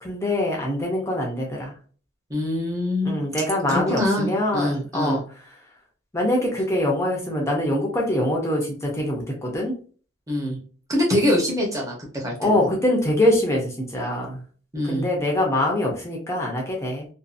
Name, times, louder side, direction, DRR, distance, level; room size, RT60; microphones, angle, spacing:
voice 1, 0.0-1.7 3.0-5.2 6.1-9.8 12.4-14.4 14.8-17.1, left 1 dB, 15° left, -2 dB, 0.6 m, -24 dB
voice 2, 2.3-3.2 3.7-5.2 10.3-10.6 10.9-12.7 14.7-15.1, left 1 dB, 15° right, -2 dB, 0.8 m, -24 dB
2.6 x 2.4 x 2.5 m, 0.41 s
head